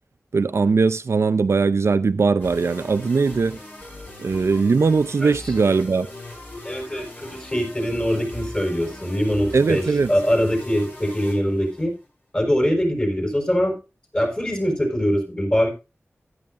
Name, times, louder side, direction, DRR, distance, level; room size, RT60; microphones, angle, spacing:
voice 1, 0.3-3.6 4.2-6.1 9.5-10.1, right 4 dB, 75° right, 0.5 m, -20 dB
sound 1, 2.4-12.1, left 1 dB, 45° left, 5.8 m, -39 dB
voice 2, 6.6-9.8 10.1-11.9 12.3-13.7 14.1-15.7, equal, 25° left, 5.2 m, -23 dB
14.0 x 11.0 x 2.5 m
wide cardioid pair, 70°, 5 cm